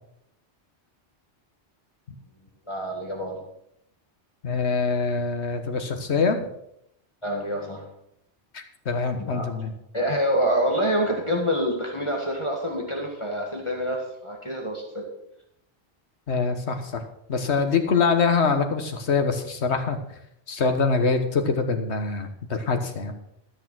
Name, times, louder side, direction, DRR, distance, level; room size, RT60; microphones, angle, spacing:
voice 1, 2.7-3.4 7.2-7.8 9.2-9.5 9.9-15.1, equal, 25° left, -1 dB, 1.8 m, -26 dB
voice 2, 4.4-6.4 8.5-9.7 16.3-17.0 17.3-20.0 20.5-23.1, left 4 dB, 70° left, 6 dB, 1.6 m, -24 dB
13.0 x 6.6 x 6.2 m, 0.76 s
omnidirectional pair, 1.2 m